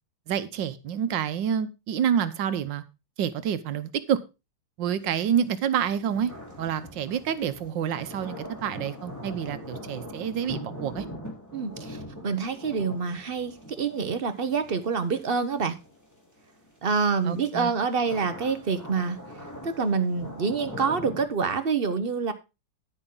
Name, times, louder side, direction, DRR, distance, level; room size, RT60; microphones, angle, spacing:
voice 1, 0.3-2.8 3.2-4.2 4.8-6.3 6.6-11.0 17.2-17.7, right 8 dB, 80° right, 13 dB, 1.6 m, -28 dB
sound 1, 5.2-16.7 17.2-21.2, left 1 dB, 10° left, 3.8 m, -42 dB
voice 2, 11.5-15.8 16.8-19.2 19.6-22.3, right 5 dB, 40° right, 10 dB, 0.9 m, -27 dB
10.0 x 10.0 x 3.8 m, 0.27 s
omnidirectional pair, 2.0 m